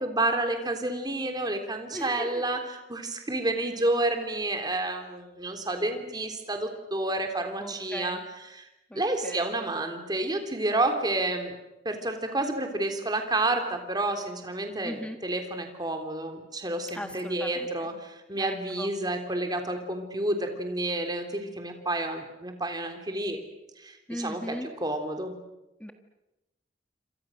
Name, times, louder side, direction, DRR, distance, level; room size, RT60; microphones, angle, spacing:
voice 1, 0.0-2.6 2.9-8.7 8.9-11.6 11.9-23.4 23.8-25.3, right 2 dB, 25° right, 5 dB, 3.5 m, -30 dB
voice 2, 1.9-2.4 7.6-8.2 8.9-9.4 14.8-15.2 16.9-17.7 18.3-18.9 24.1-24.7 25.8-25.9, equal, 5° left, 6 dB, 1.6 m, -38 dB
28.0 x 26.5 x 6.5 m, 0.96 s
head